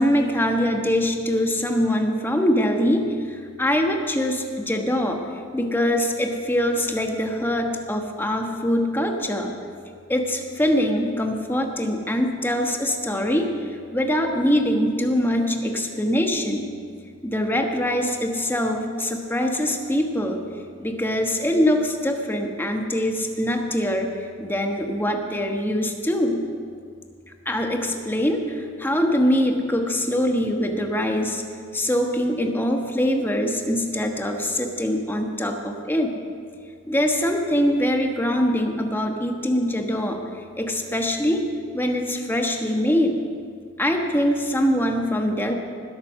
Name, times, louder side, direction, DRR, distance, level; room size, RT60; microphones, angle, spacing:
voice 1, 0.0-5.2 5.5-9.5 10.1-13.5 13.9-16.7 17.2-20.4 20.8-26.4 27.4-31.4 31.7-36.1 36.9-40.2 40.6-41.4 41.7-43.1 43.8-45.5, equal, 10° left, 3 dB, 1.3 m, -23 dB
20.0 x 8.4 x 6.3 m, 2.2 s
head